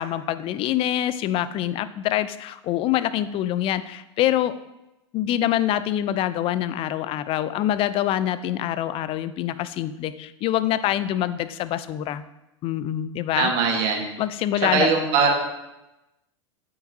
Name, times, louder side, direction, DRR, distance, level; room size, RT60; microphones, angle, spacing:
voice 1, 0.0-4.6 5.1-12.2 12.6-13.5 14.2-14.9, left 12 dB, 35° left, 14 dB, 0.4 m, -25 dB
voice 2, 13.4-14.0 14.7-15.3, right 5 dB, 50° right, 1 dB, 1.7 m, -21 dB
8.5 x 5.8 x 2.7 m, 0.95 s
hypercardioid pair, 100°, 16 cm